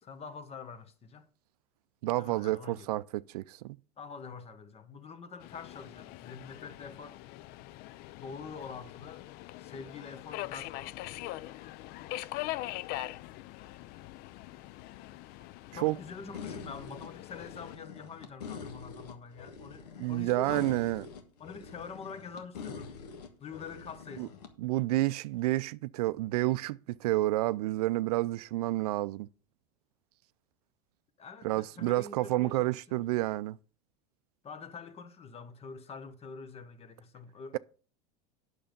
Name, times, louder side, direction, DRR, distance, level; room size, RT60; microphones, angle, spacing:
voice 1, 0.0-1.3 2.2-2.9 4.0-7.2 8.1-9.3 9.6-11.1 15.7-20.8 21.4-22.9 23.4-24.4 31.2-33.0 34.4-37.6, left 5 dB, 30° left, 1.3 m, -46 dB
voice 2, 2.0-3.8 15.8-16.0 20.0-21.0 24.2-24.3 24.6-29.3 31.4-33.6, right 17 dB, 80° right, 0.4 m, -30 dB
Subway metro underground, 5.4-17.8, left 16 dB, 50° left, 0.5 m, -43 dB
sound 1, 16.3-24.5, left 6 dB, 85° left, 1.6 m, -45 dB
8.8 x 6.7 x 5.2 m
hypercardioid pair, 100°, 20 cm